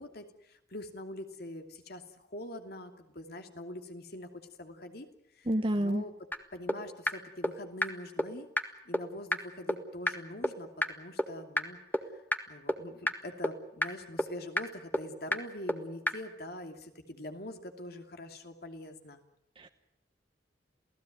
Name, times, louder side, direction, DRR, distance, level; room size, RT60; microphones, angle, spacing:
voice 1, 0.0-5.1 5.3-6.1 6.5-8.5 8.8-12.2 12.5-19.2, left 1 dB, 60° left, 6 dB, 2.8 m, -44 dB
voice 2, 5.5-6.0 19.6-19.7, right 1 dB, 30° right, 6 dB, 1.1 m, -29 dB
sound 1, 6.3-6.4 6.7-6.8 7.1-7.2 7.4-7.5 7.8-7.9 8.2-8.3 8.6-8.7 8.9-9.0 9.3-9.4 9.7-9.8 10.1-10.2 10.4-10.5 10.8-10.9 11.2-11.3 11.6-11.7 11.9-12.0 12.3-12.4 12.7-12.8 13.1-13.2 13.4-13.5 13.8-13.9 14.2-14.3 14.6-14.7 14.9-15.0 15.3-15.4 15.7-15.8 16.1-16.2, left 1 dB, 10° left, 1.7 m, -27 dB
28.5 x 17.0 x 9.4 m, 0.80 s
head